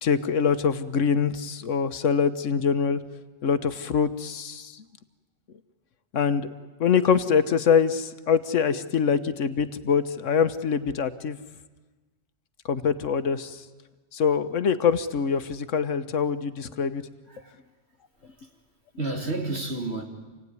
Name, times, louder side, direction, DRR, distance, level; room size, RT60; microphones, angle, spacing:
voice 1, 0.0-3.0 3.4-4.7 6.1-6.5 6.8-11.4 12.7-13.5 14.1-17.0, left 6 dB, 80° left, 1.4 m, -24 dB
voice 2, 17.3-17.6 18.2-18.5 19.0-20.1, right 2 dB, 60° right, 3.2 m, -31 dB
28.0 x 17.0 x 9.6 m
omnidirectional pair, 1.3 m